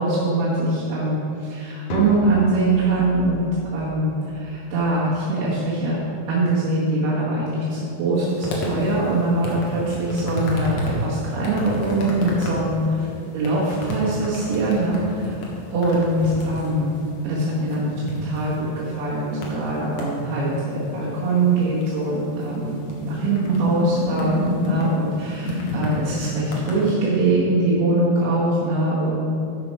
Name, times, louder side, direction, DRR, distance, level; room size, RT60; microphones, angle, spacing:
voice 1, 0.0-3.4 3.7-13.1 13.3-15.4 15.7-16.9 17.2-29.3, right 2 dB, 85° right, -10 dB, 3.7 m, -22 dB
sound 1, 1.9-5.9, left 1 dB, 75° left, 1.8 m, -37 dB
sound 2, 8.2-27.0, left 1 dB, 55° left, 2.2 m, -31 dB
11.5 x 7.3 x 4.7 m, 2.6 s
omnidirectional pair, 4.4 m